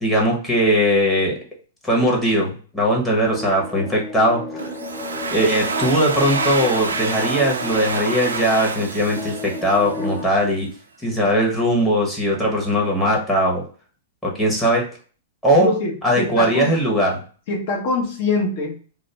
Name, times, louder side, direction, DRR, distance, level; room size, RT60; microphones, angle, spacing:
voice 1, 0.0-1.4 1.8-4.7 5.3-10.7 11.0-13.6 14.2-14.8 15.4-15.7 16.0-17.2, equal, 10° left, -4 dB, 1.0 m, -19 dB
sound 1, 3.2-10.3, left 2 dB, 25° left, 0.6 m, -33 dB
Domestic sounds home sounds, 4.6-10.2, right 4 dB, 85° right, 0.4 m, -28 dB
voice 2, 15.5-16.7 17.5-18.8, left 3 dB, 50° left, 0 dB, 1.0 m, -23 dB
2.4 x 2.0 x 3.2 m, 0.40 s
hypercardioid pair, 115°, 0 cm